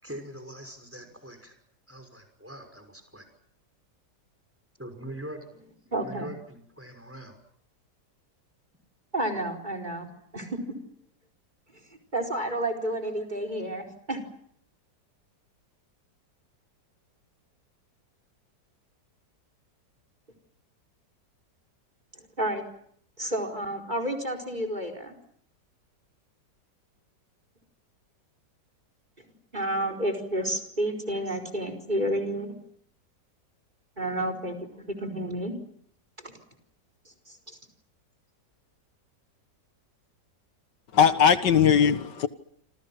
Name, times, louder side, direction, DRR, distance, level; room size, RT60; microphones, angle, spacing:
voice 1, 0.0-1.6 1.9-3.3 4.8-5.4 5.8-7.4, right 1 dB, 5° right, 6.0 m, -42 dB
voice 2, 5.9-6.3 9.1-10.1 10.3-10.6 12.1-14.2 22.2-22.6 23.2-25.1 29.5-32.6 34.0-35.6 36.2-36.4 37.3-37.6, right 1 dB, 25° right, 4.8 m, -30 dB
voice 3, 40.9-42.3, left 7 dB, 75° left, 2.0 m, -19 dB
28.5 x 27.5 x 6.0 m
omnidirectional pair, 1.9 m